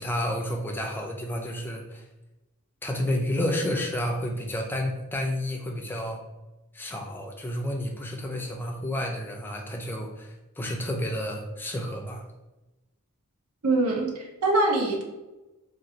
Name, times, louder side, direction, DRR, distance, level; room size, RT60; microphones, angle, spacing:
voice 1, 0.0-2.0 2.8-6.2 6.7-12.2, left 1 dB, 10° left, 1 dB, 0.3 m, -30 dB
voice 2, 13.6-15.0, right 2 dB, 80° right, 1 dB, 0.6 m, -24 dB
2.9 x 2.4 x 2.7 m, 1.0 s
head